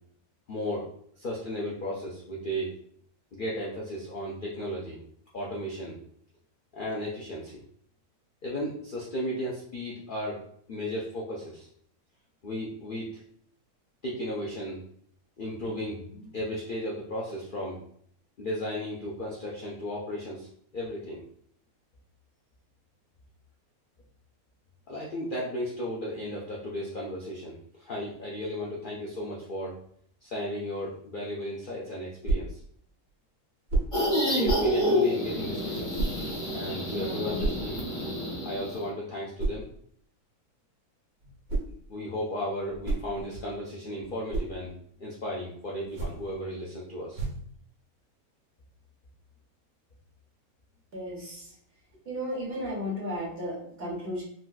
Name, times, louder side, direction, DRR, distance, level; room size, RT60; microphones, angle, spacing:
voice 1, 0.5-0.9 1.1-2.7 3.3-5.0 5.3-6.0 6.7-7.6 8.4-10.4 10.7-11.7 12.4-13.1 14.0-14.8 15.4-17.8 18.4-21.2 24.9-29.8 30.2-32.6 34.2-36.0 36.5-37.7 38.4-39.7 41.9-47.2, equal, 85° left, -4 dB, 0.4 m, -35 dB
sound 1, 32.2-32.6 33.7-34.0 34.4-34.8 35.9-36.2 37.4-37.7 39.4-39.7 41.2-41.8 42.6-43.5 44.0-44.6 45.8-46.3 47.1-47.5, right 2 dB, 85° right, 1.5 m, -31 dB
sound 2, 33.9-38.8, equal, 25° left, 0.8 m, -28 dB
voice 2, 36.9-37.4 50.9-51.5 52.0-54.2, equal, 45° right, -5 dB, 1.3 m, -34 dB
3.9 x 2.2 x 2.3 m, 0.63 s
omnidirectional pair, 1.6 m